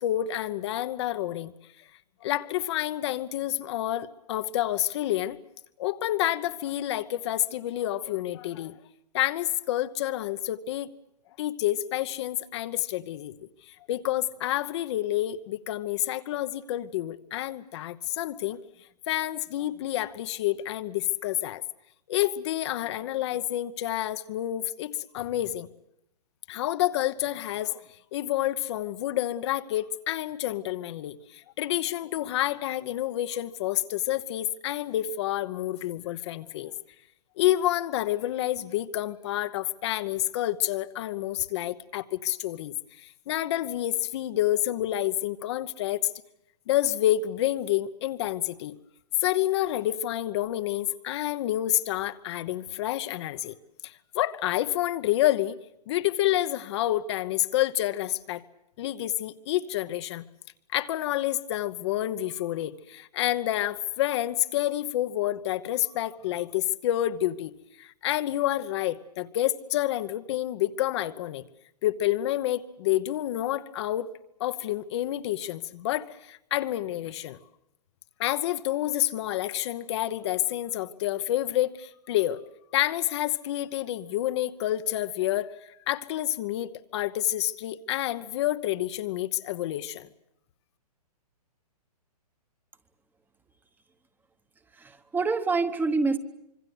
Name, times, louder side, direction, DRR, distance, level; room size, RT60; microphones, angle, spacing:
voice 1, 0.0-1.5 2.2-5.4 5.8-8.8 9.1-10.9 11.4-13.3 13.7-18.6 19.1-21.6 22.1-25.7 26.5-27.8 28.1-36.7 37.4-46.0 46.7-48.8 49.2-53.5 53.8-55.6 55.9-58.4 58.8-60.2 60.7-67.5 67.8-71.4 71.8-74.1 74.4-77.4 78.2-82.4 82.7-90.1, left 13 dB, 40° left, 11 dB, 1.0 m, -28 dB
voice 2, 94.7-96.2, right 4 dB, 10° right, 10 dB, 1.2 m, -26 dB
25.5 x 23.5 x 8.0 m, 0.80 s
hypercardioid pair, 130°, 21 cm